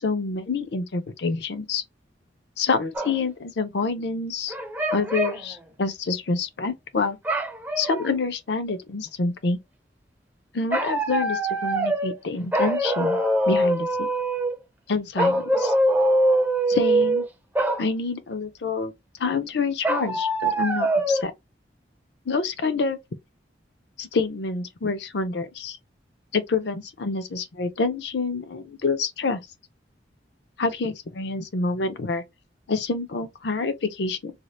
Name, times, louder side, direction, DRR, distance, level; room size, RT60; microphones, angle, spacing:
voice 1, 0.0-1.8 2.6-4.5 4.9-7.2 7.8-9.6 10.5-13.2 13.5-14.1 14.9-15.7 16.7-17.3 17.8-18.9 19.2-21.3 22.3-23.0 24.0-25.8 26.3-29.4 30.6-32.2 32.7-34.3, left 4 dB, 70° left, 0.6 m, -27 dB
sound 1, 3.0-3.2 4.5-5.4 7.3-8.1 10.7-12.2 12.5-14.6 15.2-17.3 17.6-17.8 19.8-21.2, right 1 dB, 10° right, 0.4 m, -23 dB
2.8 x 2.4 x 3.0 m
head